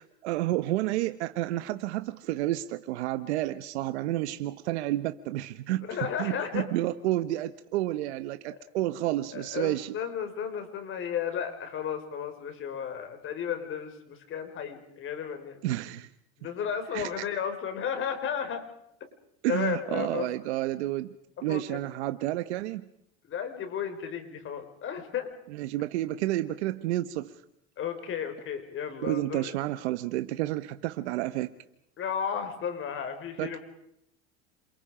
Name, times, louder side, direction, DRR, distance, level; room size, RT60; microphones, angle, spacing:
voice 1, 0.2-9.9 15.6-16.1 16.9-17.2 19.4-21.1 21.4-22.9 25.5-27.3 29.0-31.5 33.4-33.6, right 15 dB, 85° right, 11 dB, 1.2 m, -30 dB
voice 2, 5.9-6.7 9.3-15.6 16.4-18.7 19.5-20.3 21.5-21.8 23.3-25.3 27.8-29.5 32.0-33.6, left 8 dB, 40° left, 6 dB, 5.0 m, -33 dB
29.0 x 27.5 x 5.0 m, 0.75 s
supercardioid pair, 130°, 32 cm